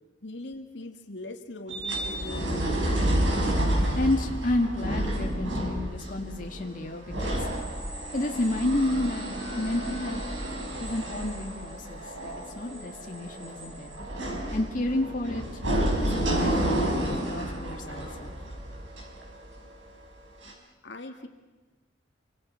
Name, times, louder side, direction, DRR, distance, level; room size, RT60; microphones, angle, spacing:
voice 1, 0.2-3.0 20.8-21.3, left 2 dB, 70° left, 4 dB, 2.2 m, -41 dB
sound 1, 1.7-19.9 20.4-20.5, right 1 dB, 85° right, 5.7 m, -30 dB
voice 2, 4.0-7.5 8.1-9.3 9.6-10.2 10.8-13.9 14.5-15.4 16.0-18.3, left 1 dB, 45° left, 1 dB, 2.1 m, -30 dB
28.0 x 25.0 x 5.8 m, 1.2 s
head